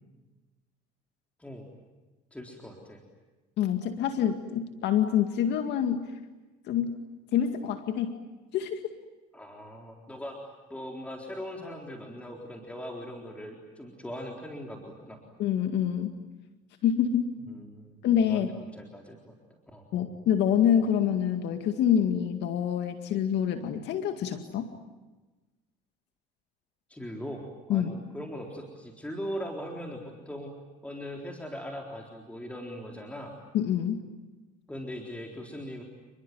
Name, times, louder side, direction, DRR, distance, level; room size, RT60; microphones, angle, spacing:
voice 1, 2.3-3.0 9.3-15.2 17.5-18.0 18.2-19.3 19.7-19.8 26.9-30.5 30.8-33.3 34.7-35.8, equal, 5° left, 1 dB, 4.0 m, -40 dB
voice 2, 3.6-6.1 6.7-7.0 7.3-8.2 8.5-8.8 15.4-16.2 16.8-17.3 18.0-18.5 19.9-24.7 27.7-27.9 33.5-34.0, left 9 dB, 65° left, 6 dB, 2.1 m, -26 dB
29.5 x 21.5 x 9.4 m, 1.2 s
supercardioid pair, 100°, 19 cm